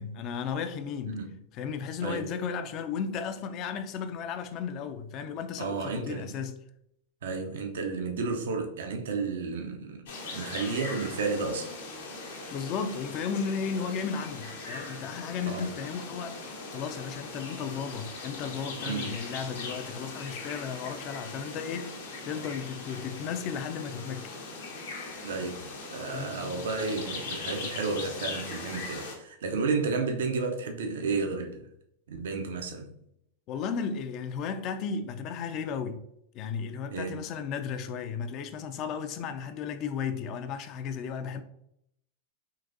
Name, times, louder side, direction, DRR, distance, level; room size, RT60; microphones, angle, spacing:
voice 1, 0.0-1.2 1.5-6.6 12.5-24.3 26.1-26.7 33.5-36.0 36.3-41.4, left 6 dB, 45° left, 0.4 m, -34 dB
voice 2, 2.0-2.3 5.6-6.3 7.2-10.0 10.3-11.7 15.5-15.7 18.9-19.2 25.2-31.7 32.1-32.9 36.9-37.2, right 4 dB, 70° right, 0.5 m, -32 dB
sound 1, 10.1-29.1, left 3 dB, 70° left, 0.8 m, -40 dB
3.9 x 2.6 x 2.5 m
hypercardioid pair, 100°, 0 cm